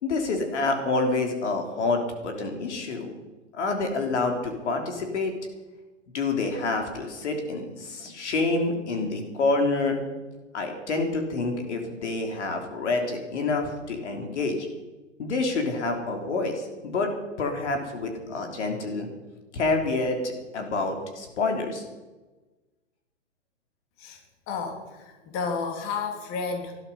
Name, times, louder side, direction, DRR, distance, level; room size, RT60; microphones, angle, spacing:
voice 1, 0.0-3.1 3.5-5.3 6.1-10.0 10.5-14.6 15.2-17.1 17.4-19.1 19.5-21.9, left 3 dB, 65° left, 4 dB, 3.3 m, -27 dB
voice 2, 24.5-26.7, left 5 dB, 35° left, 3 dB, 3.2 m, -31 dB
19.0 x 12.5 x 5.5 m, 1.2 s
figure-of-eight pair, 110°, 37 cm